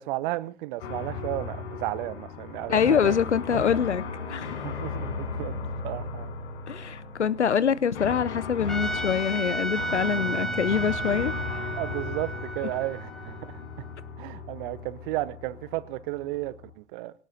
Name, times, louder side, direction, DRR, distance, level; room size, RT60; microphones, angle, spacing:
voice 1, 0.0-3.1 3.5-3.6 4.6-5.5 5.8-6.3 11.8-13.6 14.2-17.1, right 18 dB, 50° right, 0.8 m, -33 dB
sound 1, 0.8-16.7, left 4 dB, 60° left, 5.4 m, -36 dB
voice 2, 2.7-4.0 4.3-4.7 6.7-11.7, left 7 dB, 85° left, 0.7 m, -25 dB
Trumpet, 8.7-13.9, right 2 dB, ahead, 2.0 m, -34 dB
23.5 x 18.0 x 2.7 m
figure-of-eight pair, 90°, 34 cm